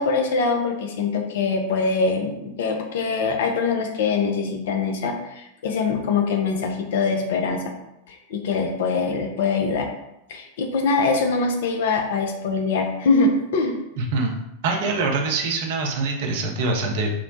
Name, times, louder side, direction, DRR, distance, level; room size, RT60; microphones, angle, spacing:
voice 1, 0.0-7.7 8.1-9.9 10.3-13.8, left 4 dB, 55° left, 3 dB, 0.3 m, -23 dB
voice 2, 14.0-14.3 14.6-17.1, right 3 dB, 50° right, 1 dB, 0.5 m, -24 dB
3.0 x 2.0 x 2.6 m, 0.85 s
figure-of-eight pair, 90°, 0 cm